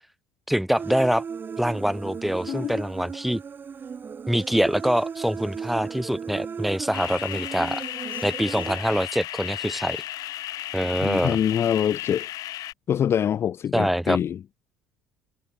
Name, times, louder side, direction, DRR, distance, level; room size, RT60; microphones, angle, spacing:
voice 1, 0.5-1.2 1.6-3.4 4.3-7.8 8.2-10.0 10.7-11.4 13.7-14.2, equal, ahead, 1.5 m, -24 dB
Human voice, 0.8-8.8, right 6 dB, 30° right, 3.5 m, -36 dB
voice 2, 2.5-2.9 11.0-12.3 12.9-14.4, left 9 dB, 35° left, 0.5 m, -25 dB
sound 1, 6.9-12.7, left 15 dB, 60° left, 1.0 m, -34 dB
cardioid pair, 125°, 7 cm